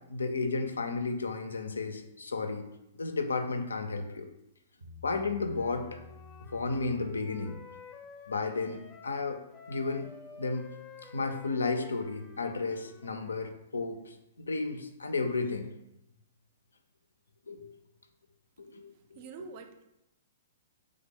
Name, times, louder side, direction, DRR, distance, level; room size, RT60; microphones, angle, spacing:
voice 1, 0.1-2.6 3.0-4.3 5.0-6.0 6.5-7.6 8.3-9.4 9.7-10.7 11.0-15.7 17.5-17.7 18.6-18.8 19.1-19.2, left 3 dB, 85° left, 6 dB, 0.3 m, -33 dB
Bass guitar, 4.8-8.2, left 3 dB, 80° right, 0.9 m, -52 dB
Wind instrument woodwind instrument, 5.4-9.2 9.5-13.5, left 4 dB, 25° left, 0.6 m, -51 dB
voice 2, 18.9-19.8, right 5 dB, 45° right, 7 dB, 0.3 m, -46 dB
3.2 x 2.0 x 3.6 m, 0.87 s
hypercardioid pair, 120°, 0 cm